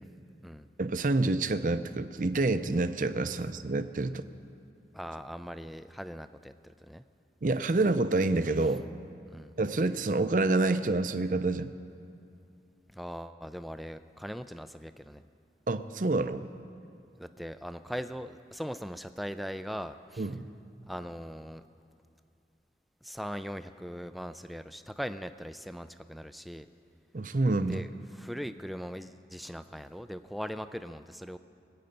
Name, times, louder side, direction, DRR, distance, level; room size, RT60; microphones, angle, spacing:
voice 1, 0.8-4.2 7.4-8.8 9.6-11.7 15.7-16.5 20.2-20.4 27.1-27.8, right 2 dB, 50° right, 10 dB, 0.6 m, -27 dB
voice 2, 4.9-7.0 9.3-9.5 12.9-15.2 17.2-20.3 20.9-21.6 23.0-26.7 27.7-31.4, equal, ahead, 10 dB, 0.3 m, -40 dB
24.5 x 8.9 x 5.3 m, 2.6 s
head